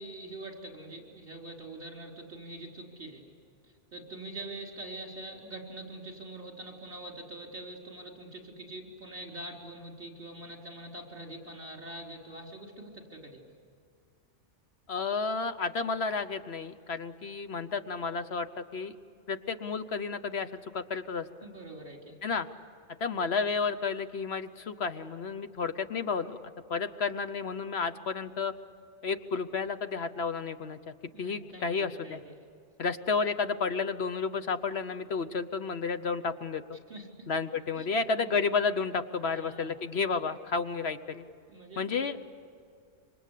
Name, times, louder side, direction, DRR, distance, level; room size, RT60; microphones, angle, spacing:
voice 1, 0.0-3.2 3.6-13.4 21.4-22.2 23.3-23.4 31.1-32.3 36.9-37.3 37.7-37.9 38.2-38.3 39.2-39.7 41.5-41.8, right 2 dB, 50° right, 0 dB, 4.6 m, -44 dB
voice 2, 14.9-18.9 19.3-21.3 22.2-22.5 23.0-26.4 26.7-28.5 29.0-30.8 31.2-32.2 32.8-36.6 37.3-41.2 41.8-42.2, left 4 dB, 60° left, 10 dB, 1.1 m, -31 dB
27.0 x 25.0 x 8.3 m, 2.3 s
omnidirectional pair, 1.2 m